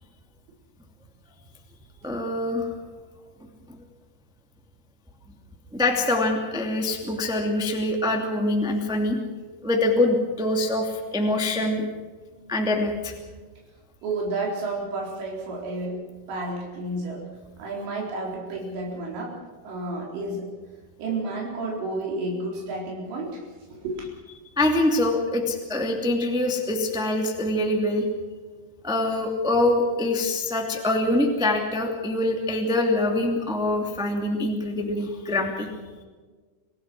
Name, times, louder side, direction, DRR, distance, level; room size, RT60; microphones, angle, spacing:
voice 1, 2.0-2.7 5.7-9.2 9.6-11.8 12.5-13.1 24.5-28.1 28.8-35.7, left 1 dB, ahead, 1 dB, 1.2 m, -24 dB
voice 2, 14.0-16.0 16.3-17.3 17.6-19.3 19.6-20.5 21.0-23.4 23.7-24.1, right 2 dB, 75° right, -2 dB, 6.3 m, -31 dB
26.5 x 17.5 x 6.2 m, 1.4 s
omnidirectional pair, 5.1 m